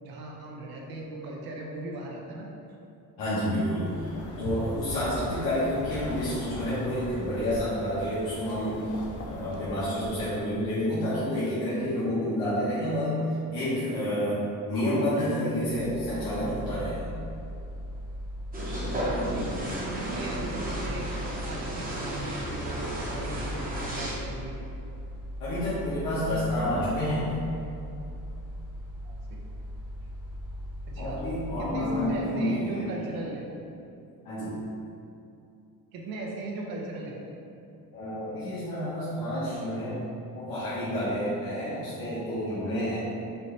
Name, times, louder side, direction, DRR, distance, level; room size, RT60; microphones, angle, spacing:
voice 1, 0.0-2.5 18.9-21.1 21.4-24.6 29.0-29.4 30.9-31.2 31.6-33.5 35.9-37.2, right 2 dB, 90° right, -1 dB, 0.8 m, -38 dB
voice 2, 3.2-17.1 25.4-27.3 31.0-32.9 34.2-34.6 37.9-40.0 40.3-43.0, equal, 75° left, -11 dB, 1.1 m, -29 dB
sound 1, 3.8-10.2, left 1 dB, 45° left, 0.5 m, -39 dB
Mechanical fan, 15.6-32.4, equal, 5° left, 0.8 m, -39 dB
sound 2, 18.5-24.1, right 1 dB, 25° right, 0.8 m, -33 dB
4.3 x 2.7 x 3.2 m, 2.7 s
cardioid pair, 150°, 35 cm